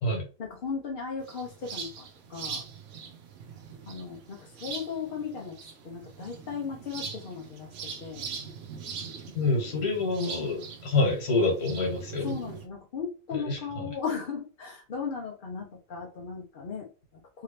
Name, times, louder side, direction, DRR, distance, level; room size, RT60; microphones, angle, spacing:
voice 1, 0.4-2.6 3.8-5.6 5.8-7.7 8.0-8.3 12.2-17.4, left 6 dB, 50° left, 0 dB, 0.6 m, -36 dB
sound 1, 1.2-12.7, right 6 dB, 60° right, 0.9 m, -42 dB
voice 2, 9.4-12.3 13.3-13.6, left 3 dB, 80° left, 0 dB, 1.9 m, -27 dB
3.5 x 2.8 x 3.1 m, 0.34 s
omnidirectional pair, 1.6 m